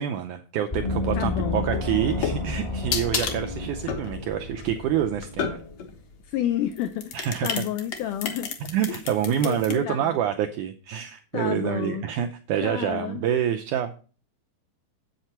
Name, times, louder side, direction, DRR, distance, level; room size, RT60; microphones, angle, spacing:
voice 1, 0.0-5.6 7.1-7.6 8.6-13.9, right 10 dB, 85° right, 7 dB, 1.8 m, -27 dB
Gong, 0.7-6.0, left 2 dB, 30° left, 0.5 m, -31 dB
voice 2, 1.1-1.6 6.2-8.6 8.9-9.0 9.4-10.2 11.3-12.0 12.6-13.2, left 11 dB, 85° left, 9 dB, 1.8 m, -30 dB
sound 1, 1.6-5.9 6.7-9.7, left 6 dB, 60° left, 1.9 m, -31 dB
8.0 x 7.9 x 4.4 m, 0.37 s
omnidirectional pair, 4.3 m